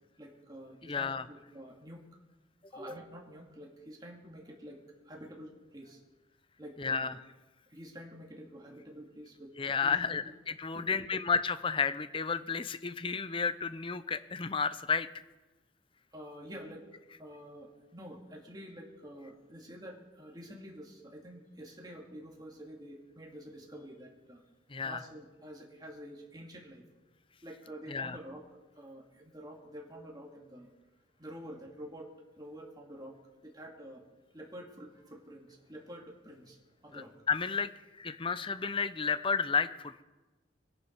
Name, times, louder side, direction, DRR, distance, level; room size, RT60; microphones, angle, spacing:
voice 1, 0.2-2.0 2.7-6.0 6.6-7.2 7.7-10.3 10.7-11.0 16.1-16.8 17.2-24.4 24.8-26.8 27.4-28.4 28.7-30.7 31.2-32.1 32.4-34.0 34.3-36.6 36.8-37.1, equal, 20° right, 0 dB, 2.5 m, -48 dB
voice 2, 0.9-1.2 6.8-7.1 9.6-15.1 24.7-25.0 27.9-28.2 36.9-40.0, left 5 dB, 30° left, 13 dB, 0.6 m, -32 dB
24.0 x 11.0 x 4.7 m, 1.1 s
head